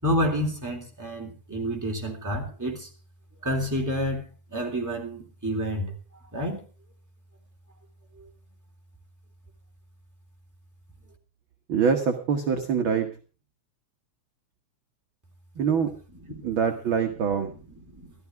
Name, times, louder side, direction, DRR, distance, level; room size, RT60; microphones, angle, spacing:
voice 1, 0.0-2.9 3.4-5.9 6.2-6.6 8.2-8.3 16.2-16.6 17.5-18.1, equal, 5° right, 2.9 m, -29 dB
voice 2, 11.7-13.1 15.6-15.9 16.4-17.5, right 6 dB, 55° right, 1.7 m, -24 dB
14.5 x 13.0 x 4.6 m
omnidirectional pair, 3.4 m